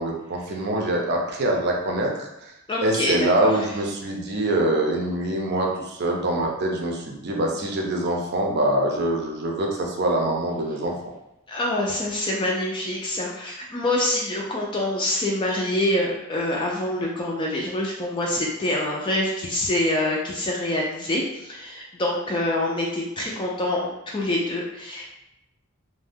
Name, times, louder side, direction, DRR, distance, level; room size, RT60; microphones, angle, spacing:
voice 1, 0.0-2.5 2.8-10.9, right 1 dB, 50° right, 0 dB, 0.5 m, -24 dB
voice 2, 2.7-3.5 11.5-25.1, left 1 dB, 25° left, -3 dB, 0.3 m, -26 dB
2.6 x 2.1 x 3.4 m, 0.88 s
head